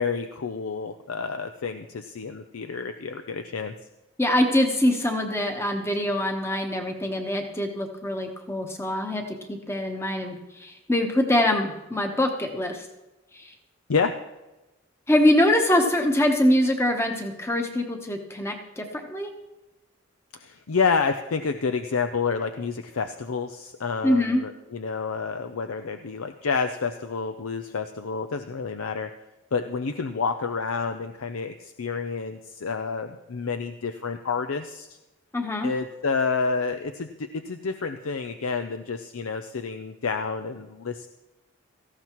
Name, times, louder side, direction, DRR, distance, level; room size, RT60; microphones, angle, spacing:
voice 1, 0.0-3.7 13.9-14.1 20.3-29.1 29.5-35.0 35.6-41.1, left 5 dB, 80° left, 8 dB, 0.6 m, -29 dB
voice 2, 4.2-12.9 13.3-13.5 15.1-19.3 24.0-24.4 35.3-35.7, left 1 dB, 10° left, 4 dB, 1.1 m, -24 dB
17.5 x 14.5 x 3.1 m, 1.0 s
head